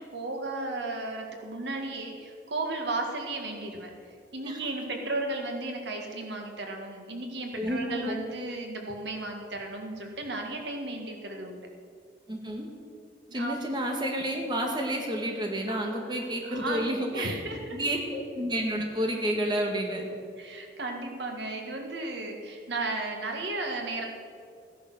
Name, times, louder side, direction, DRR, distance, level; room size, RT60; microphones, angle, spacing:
voice 1, 0.1-3.9 4.3-11.7 13.3-13.6 15.7-16.2 16.4-17.8 20.4-24.1, right 2 dB, 80° right, 2 dB, 1.9 m, -34 dB
voice 2, 7.6-8.1 12.3-12.7 13.3-17.4 17.7-20.1, equal, 25° right, 1 dB, 1.7 m, -30 dB
16.0 x 10.5 x 6.3 m, 2.3 s
head